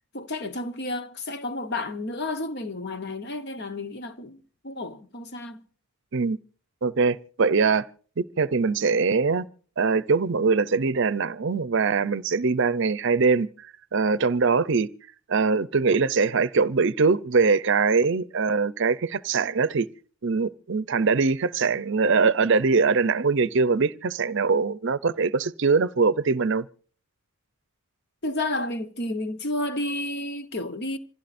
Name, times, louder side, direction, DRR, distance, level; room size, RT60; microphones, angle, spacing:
voice 1, 0.1-5.6 28.2-31.0, left 2 dB, 50° left, 1.1 m, -31 dB
voice 2, 6.8-7.9 8.2-9.4 9.8-13.5 13.9-14.9 15.3-19.9 20.2-26.7, right 4 dB, 55° right, 0.6 m, -22 dB
26.5 x 16.0 x 2.6 m
head